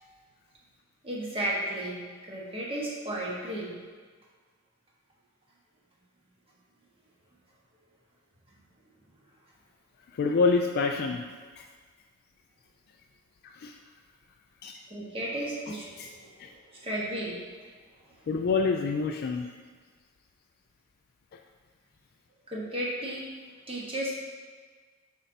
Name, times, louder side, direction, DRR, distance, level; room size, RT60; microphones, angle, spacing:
voice 1, 1.0-3.7 14.9-17.4 18.1-18.3 22.5-23.3 23.7-24.3, right 1 dB, 25° right, -4 dB, 1.3 m, -34 dB
voice 2, 10.1-11.2 13.6-13.7 14.6-14.8 16.0-16.1 16.4-16.5 18.3-19.5, left 4 dB, 50° left, 3 dB, 0.3 m, -26 dB
7.0 x 5.5 x 2.8 m, 1.5 s
head